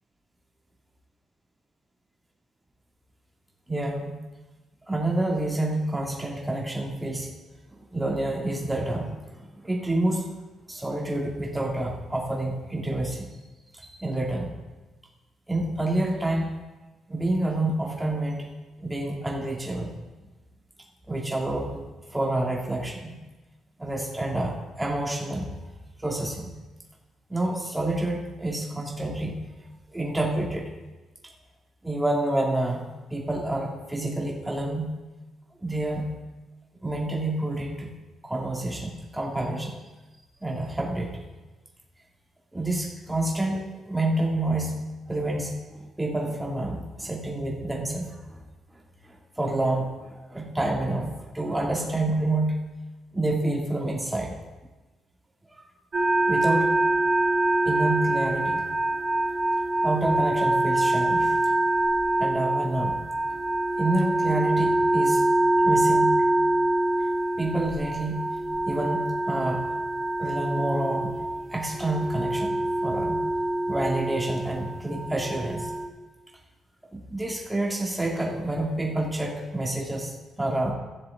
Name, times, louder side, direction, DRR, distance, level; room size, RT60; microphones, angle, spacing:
voice 1, 3.7-4.2 4.9-7.3 7.7-10.3 10.7-13.4 13.8-14.5 15.5-16.5 17.1-18.5 18.8-19.9 21.1-23.1 23.8-25.5 26.0-26.5 27.3-29.4 29.9-30.7 31.8-34.9 35.6-36.1 36.8-37.9 38.2-39.7 40.4-41.2 42.5-44.8 45.1-48.2 49.0-51.1 51.3-52.6 53.1-54.4 55.5-55.6 56.3-56.7 57.7-58.6 59.8-61.4 62.2-62.9 63.8-65.2 65.6-66.2 67.4-68.3 68.7-69.7 70.2-71.1 71.5-73.2 73.7-75.7 76.9-80.7, right 1 dB, 10° right, -2 dB, 2.5 m, -28 dB
sound 1, 55.9-75.9, right 2 dB, 35° right, 1.7 m, -25 dB
15.5 x 7.6 x 3.8 m, 1.2 s
cardioid pair, 90°, 0 cm